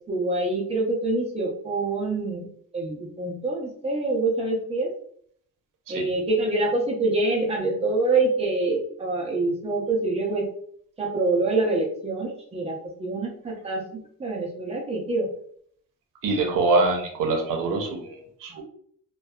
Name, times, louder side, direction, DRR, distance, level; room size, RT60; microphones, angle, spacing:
voice 1, 0.1-2.5 2.7-4.9 5.9-10.5 11.0-15.3 18.5-18.6, right 2 dB, 20° right, -1 dB, 0.5 m, -26 dB
voice 2, 16.2-18.6, right 3 dB, 75° right, 3 dB, 0.7 m, -24 dB
2.5 x 2.2 x 2.2 m, 0.63 s
cardioid pair, 160°, 32 cm